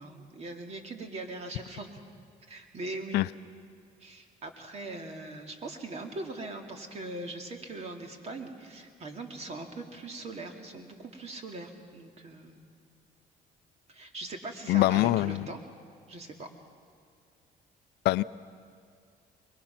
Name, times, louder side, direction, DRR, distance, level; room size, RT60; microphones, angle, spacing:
voice 1, 0.0-1.9 2.5-3.3 4.0-12.6 13.9-15.6 16.1-16.5, right 2 dB, 40° right, 4 dB, 2.3 m, -41 dB
voice 2, 14.7-15.4 18.0-18.2, left 17 dB, 75° left, 16 dB, 0.5 m, -23 dB
24.0 x 21.5 x 5.8 m, 2.3 s
cardioid pair, 110°, 17 cm